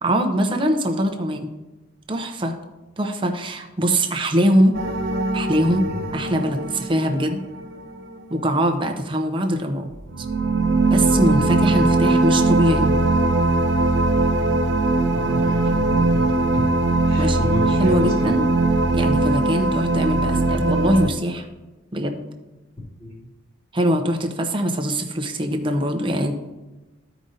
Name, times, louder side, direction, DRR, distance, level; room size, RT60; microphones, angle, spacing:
voice 1, 0.0-1.5 2.1-2.6 3.0-4.8 5.3-5.9 6.1-7.4 8.3-9.9 10.9-12.9 17.2-18.5 18.9-21.5 21.9-22.2 23.7-26.3, equal, 25° right, 4 dB, 0.7 m, -22 dB
sound 1, 4.7-8.2 10.0-21.1, right 2 dB, 65° right, 0.8 m, -20 dB
voice 2, 11.5-11.9 15.0-16.6 17.1-18.3 23.0-23.1, left 2 dB, 25° left, -5 dB, 2.3 m, -31 dB
14.0 x 5.0 x 2.7 m, 1.1 s
head